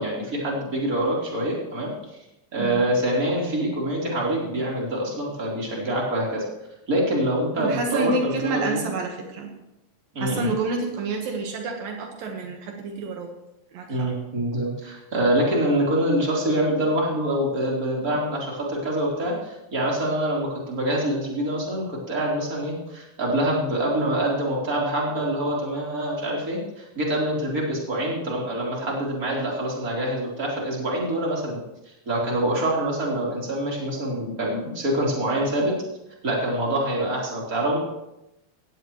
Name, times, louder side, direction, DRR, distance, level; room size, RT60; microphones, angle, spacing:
voice 1, 0.0-1.9 2.5-6.4 6.9-8.8 10.1-10.5 13.9-31.6 32.1-35.7 36.2-37.8, right 1 dB, 25° right, -3 dB, 4.1 m, -25 dB
voice 2, 2.6-2.9 7.6-9.5 10.2-13.3 13.7-14.1, right 4 dB, 75° right, 2 dB, 3.2 m, -29 dB
18.0 x 16.5 x 3.2 m, 0.91 s
omnidirectional pair, 4.2 m